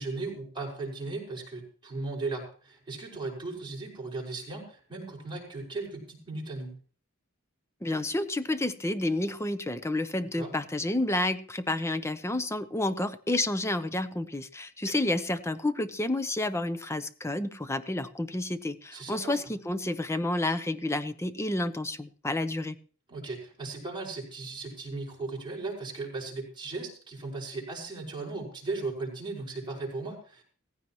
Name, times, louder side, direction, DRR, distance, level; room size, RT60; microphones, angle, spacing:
voice 1, 0.0-6.7 10.3-10.5 18.9-19.4 23.1-30.4, right 3 dB, 25° right, -2 dB, 5.6 m, -37 dB
voice 2, 7.8-22.8, left 2 dB, 15° left, 12 dB, 0.7 m, -30 dB
16.5 x 15.0 x 3.0 m, 0.40 s
head